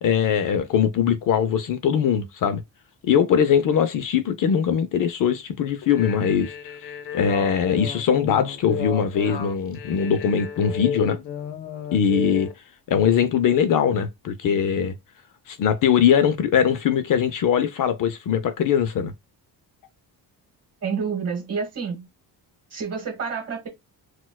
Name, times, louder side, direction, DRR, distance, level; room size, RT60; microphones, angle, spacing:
voice 1, 0.0-2.6 3.0-6.5 7.1-11.2 11.9-12.5 12.9-14.9 15.5-19.1, left 8 dB, 55° left, 0.5 m, -21 dB
sound 1, 5.8-12.5, left 8 dB, 85° left, 0.8 m, -32 dB
voice 2, 20.8-22.1 22.7-23.7, right 5 dB, 40° right, 1.4 m, -28 dB
4.1 x 2.2 x 2.3 m
cardioid pair, 160°, 40 cm